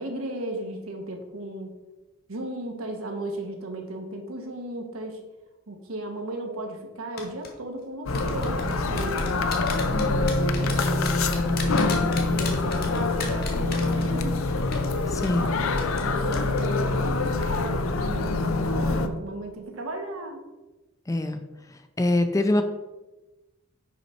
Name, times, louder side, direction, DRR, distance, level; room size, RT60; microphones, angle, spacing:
voice 1, 0.0-1.8 2.3-5.2 5.7-9.3 10.0-14.4 16.0-20.4, right 1 dB, 80° right, 3 dB, 1.1 m, -35 dB
sound 1, 7.2-7.5 8.1-14.4 14.7-14.9 15.2-15.4 15.8-16.1 16.3-16.6 16.9-17.1, left 5 dB, 45° left, 1.1 m, -35 dB
sound 2, 8.1-19.1, left 3 dB, 75° left, 0.5 m, -25 dB
voice 2, 15.1-15.6 21.1-21.4 22.0-22.6, left 1 dB, 15° left, 7 dB, 0.4 m, -23 dB
5.6 x 5.3 x 4.4 m, 1.1 s
head